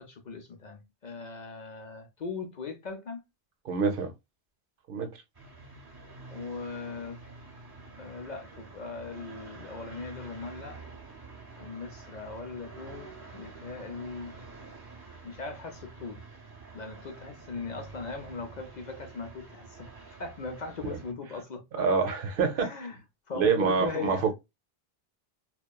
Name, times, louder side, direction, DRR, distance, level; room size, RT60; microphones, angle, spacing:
voice 1, 0.0-3.2 6.3-7.2 8.0-10.8 11.6-14.4 15.2-16.2 16.7-19.9 20.2-21.8 22.6-23.0 23.3-24.2, left 4 dB, 55° left, 0.6 m, -39 dB
voice 2, 3.6-4.1 4.9-5.1 21.7-22.7 23.4-24.3, right 5 dB, 65° right, 0.7 m, -26 dB
sound 1, 5.3-21.1, right 3 dB, 25° right, 0.8 m, -48 dB
2.8 x 2.2 x 2.2 m
omnidirectional pair, 1.0 m